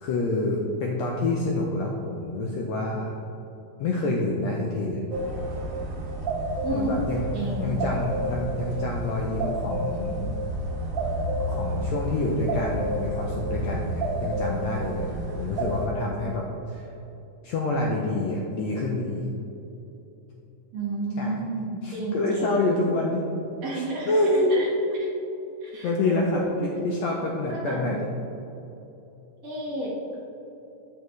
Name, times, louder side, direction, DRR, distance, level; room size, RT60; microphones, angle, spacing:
voice 1, 0.0-3.2 3.8-5.0 6.7-7.3 7.6-10.4 11.5-15.1 15.4-16.8 17.4-19.3 21.2-21.4 21.8-23.2 23.7-24.6 25.8-28.0, left 2 dB, 80° left, -1 dB, 1.5 m, -27 dB
sound 1, 5.1-15.9, right 1 dB, 45° right, 1.7 m, -30 dB
voice 2, 6.6-7.0 7.3-7.7 20.7-22.6 23.6-24.2 24.5-24.7 25.6-26.6 27.5-28.0 29.4-30.1, right 2 dB, 75° right, -6 dB, 0.8 m, -31 dB
8.0 x 6.8 x 3.1 m, 2.9 s
omnidirectional pair, 3.8 m